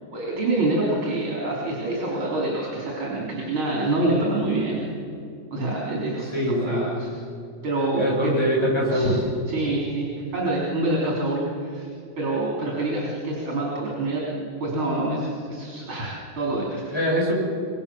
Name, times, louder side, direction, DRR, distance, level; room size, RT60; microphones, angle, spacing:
voice 1, 0.1-4.8 5.5-7.1 7.6-8.4 8.9-9.1 9.5-11.9 12.2-14.2 14.6-16.8, right 2 dB, 90° right, -4 dB, 4.7 m, -26 dB
voice 2, 6.3-6.8 8.0-9.3 16.9-17.3, equal, 10° left, -3 dB, 6.1 m, -23 dB
26.5 x 21.0 x 7.1 m, 2.4 s
omnidirectional pair, 2.2 m